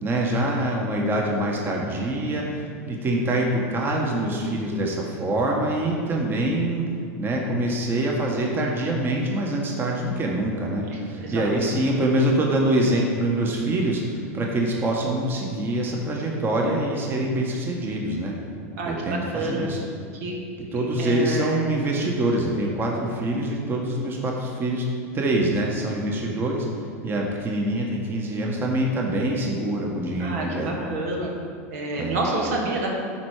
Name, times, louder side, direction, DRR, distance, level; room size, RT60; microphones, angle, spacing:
voice 1, 0.0-6.9 7.2-18.4 18.8-19.8 20.7-24.9 25.1-26.7 27.0-30.8 32.0-32.2, right 1 dB, 25° right, -1 dB, 1.2 m, -25 dB
voice 2, 10.9-11.5 18.8-19.7 20.1-20.3 20.7-21.7 30.2-31.3 31.7-32.9, right 2 dB, 80° right, -1 dB, 1.6 m, -29 dB
9.8 x 4.4 x 4.9 m, 2.3 s
supercardioid pair, 110°, 8 cm